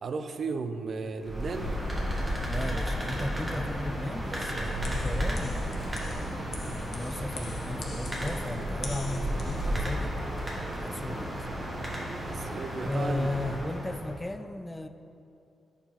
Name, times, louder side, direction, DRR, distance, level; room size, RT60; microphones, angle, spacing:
voice 1, 0.0-1.8 12.2-13.3 13.6-13.7, right 4 dB, 60° right, 8 dB, 0.4 m, -34 dB
sound 1, 1.2-14.2, equal, 25° right, 1.5 m, -33 dB
voice 2, 2.5-6.3 6.7-10.2 10.8-11.5 12.7-14.9, left 2 dB, 15° left, 9 dB, 0.3 m, -35 dB
sound 2, 4.6-9.7, left 1 dB, 60° left, 0.8 m, -42 dB
sound 3, 8.2-13.5, right 1 dB, 5° right, 1.1 m, -48 dB
5.5 x 4.4 x 4.2 m, 2.6 s
supercardioid pair, 55°, 0 cm